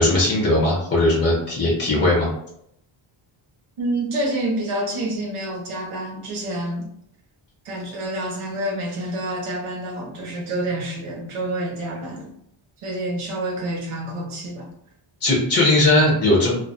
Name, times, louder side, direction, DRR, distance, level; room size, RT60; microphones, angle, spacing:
voice 1, 0.0-2.3 15.2-16.5, left 2 dB, 25° left, -4 dB, 0.6 m, -18 dB
voice 2, 3.8-6.9 7.6-12.3 12.8-14.7, right 1 dB, 85° right, 1 dB, 0.8 m, -28 dB
2.3 x 2.2 x 2.6 m, 0.73 s
wide cardioid pair, 130°, 49 cm